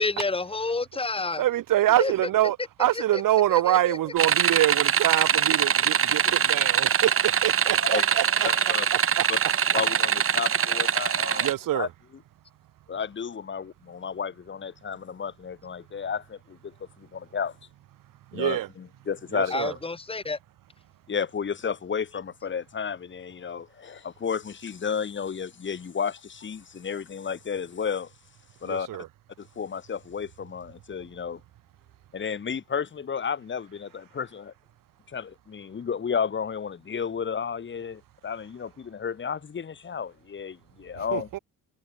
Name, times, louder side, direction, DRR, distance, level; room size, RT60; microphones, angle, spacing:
voice 1, 0.0-1.4 2.0-2.3 2.9-3.2 3.5-4.1 19.5-20.4, left 3 dB, 15° left, 6.3 m, -29 dB
voice 2, 1.4-8.5 11.4-11.9 18.3-18.7 19.3-19.7 28.7-29.1 41.1-41.4, right 13 dB, 85° right, 8.0 m, -25 dB
sound 1, 4.2-11.5, right 8 dB, 45° right, 3.4 m, -23 dB
voice 3, 8.4-8.9 9.3-9.4 9.7-11.9 12.9-17.6 18.3-19.5 21.1-28.1 28.6-28.9 29.4-31.4 32.1-34.5 35.1-41.3, left 6 dB, 35° left, 6.9 m, -32 dB
cardioid pair, 150°, 32 cm